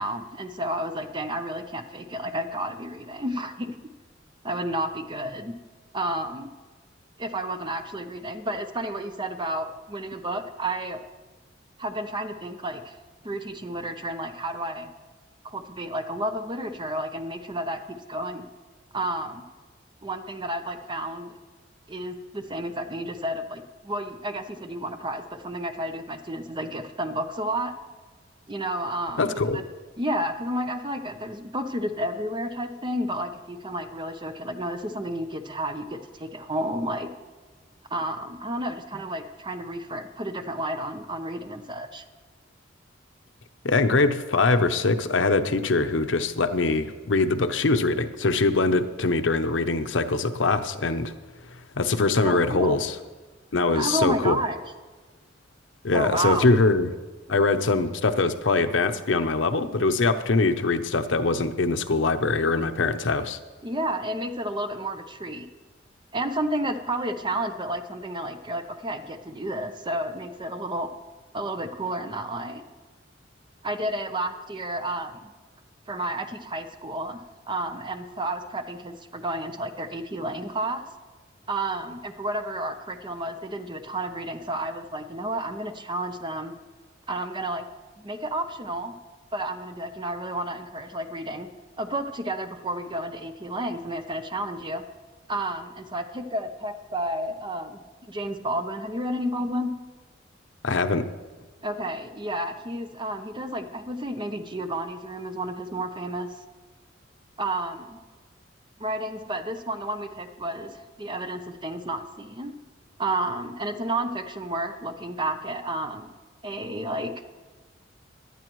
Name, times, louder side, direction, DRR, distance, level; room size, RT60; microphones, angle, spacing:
voice 1, 0.0-3.8 4.4-5.5 5.9-6.5 7.2-11.0 11.8-12.9 13.2-14.9 15.4-18.5 18.9-19.4 20.0-21.3 21.9-27.7 28.5-29.6 30.0-37.1 37.9-42.0 52.2-52.8 53.7-54.6 55.9-56.5 63.6-65.5 66.1-70.9 71.3-72.6 73.6-75.3 75.9-77.2 77.5-80.8 81.5-86.5 87.1-87.7 88.0-88.9 89.3-91.5 91.8-94.8 95.3-97.8 98.1-99.7 101.6-106.3 107.4-108.0 108.8-112.5 113.0-116.1 116.4-117.1, right 1 dB, 25° right, 7 dB, 0.8 m, -31 dB
voice 2, 29.2-29.6 43.6-51.1 51.8-52.9 53.5-54.4 55.8-56.9 57.3-63.4 100.6-101.0, left 3 dB, 80° left, 9 dB, 0.8 m, -23 dB
17.5 x 11.5 x 3.1 m, 1.3 s
head